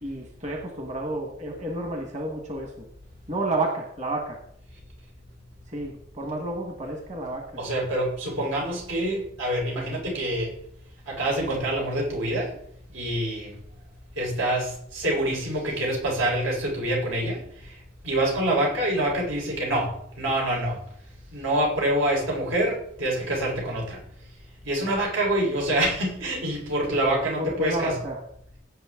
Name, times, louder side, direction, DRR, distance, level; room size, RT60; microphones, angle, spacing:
voice 1, 0.0-2.8 3.3-4.4 5.7-7.6 27.4-28.2, right 1 dB, 35° right, 2 dB, 1.5 m, -30 dB
voice 2, 7.6-10.5 11.1-12.5 12.9-13.5 14.2-17.7 18.0-20.8 21.3-24.0 24.6-27.9, right 1 dB, 85° right, -2 dB, 4.4 m, -26 dB
17.0 x 7.8 x 3.7 m, 0.68 s
head